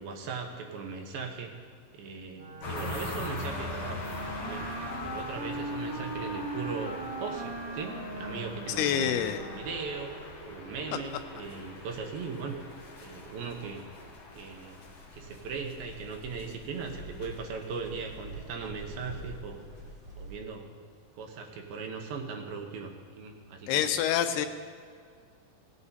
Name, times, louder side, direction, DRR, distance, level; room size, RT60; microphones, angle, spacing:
voice 1, 0.0-1.5 1.9-4.0 4.4-4.7 5.0-12.6 13.0-13.8 14.4-14.8 15.1-19.6 20.2-20.7 21.2-23.9 24.3-24.5, right 5 dB, 75° right, 2 dB, 2.7 m, -39 dB
Wind instrument woodwind instrument, 2.3-10.4, right 2 dB, 50° right, 1.9 m, -39 dB
sound 1, 2.6-19.9, left 2 dB, 55° left, 3.1 m, -43 dB
voice 2, 8.8-9.5 23.7-24.5, left 9 dB, 90° left, 8 dB, 2.7 m, -27 dB
sound 2, 15.0-20.5, right 1 dB, 10° right, 2.6 m, -47 dB
17.5 x 8.1 x 4.1 m, 2.1 s
omnidirectional pair, 4.5 m